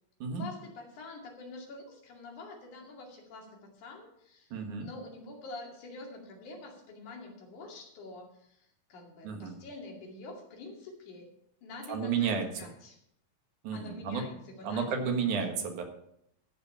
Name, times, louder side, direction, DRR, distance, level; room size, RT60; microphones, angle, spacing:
voice 1, 0.4-11.2 11.6-12.3 12.6-13.0 13.7-15.2, left 2 dB, 80° left, 0 dB, 3.9 m, -46 dB
voice 2, 4.5-4.9 9.2-9.6 11.9-12.7 13.6-14.2 14.6-15.8, right 6 dB, 85° right, 4 dB, 3.1 m, -32 dB
13.0 x 7.4 x 5.7 m, 0.74 s
omnidirectional pair, 3.4 m